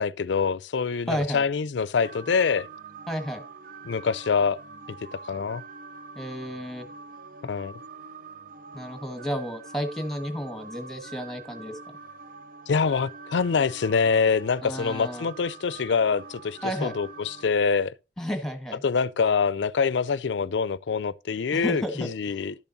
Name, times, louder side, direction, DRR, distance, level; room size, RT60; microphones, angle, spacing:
voice 1, 0.0-2.7 3.8-4.6 5.3-5.6 7.4-7.8 12.7-17.9 18.8-22.5, left 5 dB, 90° left, 0.5 m, -25 dB
voice 2, 1.1-1.4 3.1-3.4 6.1-6.8 8.7-11.7 14.6-15.3 16.6-17.0 18.2-18.8 21.5-22.4, equal, ahead, 1.6 m, -32 dB
sound 1, 2.0-17.5, right 4 dB, 50° right, 0.7 m, -45 dB
12.0 x 7.0 x 2.7 m
head